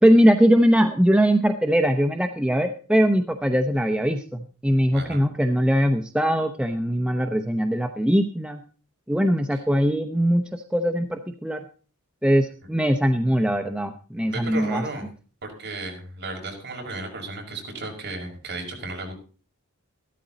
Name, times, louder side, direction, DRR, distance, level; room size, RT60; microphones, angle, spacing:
voice 1, 0.0-8.6 9.1-11.6 12.2-14.8, equal, 5° right, 5 dB, 0.8 m, -21 dB
voice 2, 4.9-5.2 9.5-9.6 14.2-15.1 15.4-19.1, right 2 dB, 50° right, 1 dB, 5.8 m, -34 dB
15.0 x 13.0 x 4.1 m, 0.39 s
head